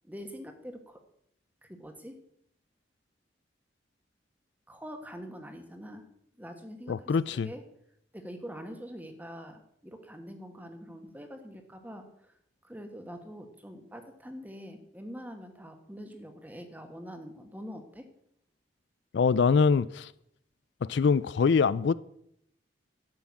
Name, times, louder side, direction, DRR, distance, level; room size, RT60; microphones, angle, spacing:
voice 1, 0.0-1.0 1.6-2.2 4.7-6.1 6.4-7.0 7.4-7.6 8.1-12.4 12.6-18.1, equal, 10° right, 1.4 m, -44 dB
voice 2, 6.9-7.5 19.1-20.1 20.8-21.9, left 5 dB, 70° left, 0.4 m, -24 dB
12.5 x 5.9 x 8.5 m
head